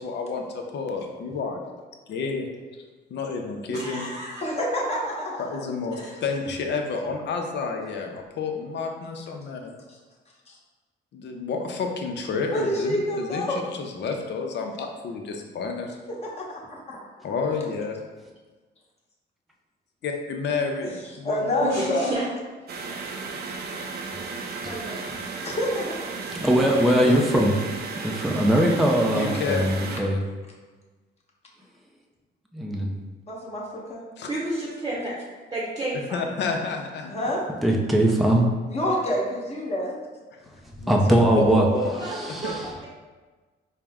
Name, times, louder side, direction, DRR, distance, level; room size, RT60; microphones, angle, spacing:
voice 1, 0.0-1.8 2.1-2.8 3.1-4.1 5.4-9.7 11.1-16.0 17.2-18.0 20.0-21.8 26.5-27.2 29.1-29.7 34.2-34.3 36.1-37.1 40.3-40.5 40.8-42.0 42.4-42.6, left 4 dB, 60° left, 3 dB, 0.6 m, -30 dB
voice 2, 3.7-4.4 6.0-6.1 21.6-22.2 24.6-25.1 34.3-35.2 35.5-36.2 38.8-39.0 42.0-42.5, right 1 dB, 20° right, -5 dB, 0.8 m, -31 dB
voice 3, 4.4-5.4 9.9-10.0 10.5-10.6 12.5-13.6 16.2-17.1 21.2-22.1 25.4-26.0 33.3-34.0 37.1-37.4 38.7-39.9, equal, 30° left, -4 dB, 1.0 m, -27 dB
sound 1, 22.7-30.0, right 4 dB, 55° right, 0.5 m, -34 dB
voice 4, 24.4-24.8 26.3-27.5 28.0-30.2 32.5-32.9 37.6-38.5 40.9-41.7 42.0-42.7, right 1 dB, ahead, 0 dB, 0.4 m, -21 dB
4.4 x 2.0 x 3.5 m, 1.3 s
cardioid pair, 90°, 20 cm